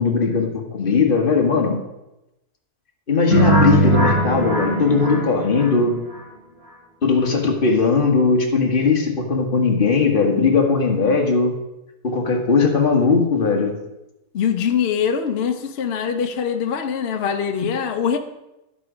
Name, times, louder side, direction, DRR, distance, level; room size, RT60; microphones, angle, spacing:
voice 1, 0.0-1.8 3.1-6.0 7.0-11.5 12.0-13.7, left 4 dB, 35° left, 2 dB, 1.6 m, -18 dB
sound 1, 3.3-6.2, right 2 dB, 25° right, 4.7 m, -20 dB
voice 2, 14.3-18.2, left 7 dB, 50° left, 6 dB, 0.9 m, -23 dB
11.5 x 8.0 x 5.0 m, 0.93 s
omnidirectional pair, 1.6 m